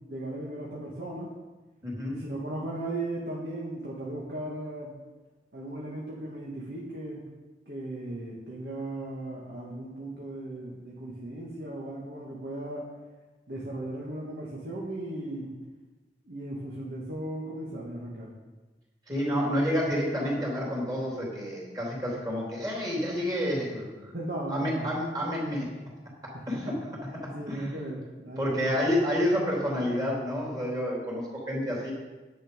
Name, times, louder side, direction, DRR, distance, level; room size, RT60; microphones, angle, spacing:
voice 1, 0.0-1.3 2.1-4.9 5.5-7.2 7.7-12.8 13.5-15.5 16.3-18.3 24.1-24.8 26.5-26.8 27.1-28.6, right 1 dB, 65° right, -5 dB, 1.9 m, -37 dB
voice 2, 1.8-2.1 19.1-24.2 24.5-25.7 26.5-26.7 27.2-27.7 28.4-31.9, equal, 20° right, -4 dB, 3.3 m, -29 dB
10.0 x 8.6 x 5.3 m, 1.2 s
head